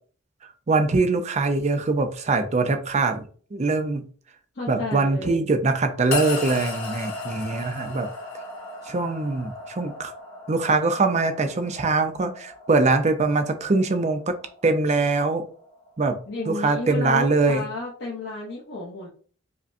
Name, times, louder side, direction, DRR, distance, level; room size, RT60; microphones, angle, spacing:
voice 1, 0.7-3.2 3.5-4.0 4.7-8.1 8.9-10.1 10.5-14.4 14.6-15.5 16.0-16.2 16.5-17.6, right 3 dB, 35° right, 7 dB, 0.5 m, -23 dB
voice 2, 4.5-5.5 16.3-19.1, left 2 dB, 55° left, -6 dB, 0.9 m, -32 dB
sound 1, 6.1-16.5, left 3 dB, 90° left, 1.2 m, -37 dB
4.9 x 2.2 x 2.6 m, 0.43 s
head